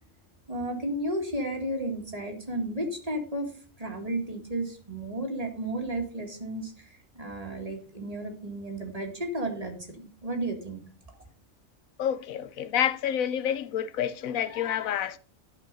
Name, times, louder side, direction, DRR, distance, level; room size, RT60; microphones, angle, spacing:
voice 1, 0.5-3.5 3.8-10.8, right 1 dB, 30° right, 2.1 m, -33 dB
voice 2, 12.0-15.2, left 9 dB, 90° left, 1.1 m, -28 dB
12.0 x 5.2 x 5.3 m
omnidirectional pair, 1.4 m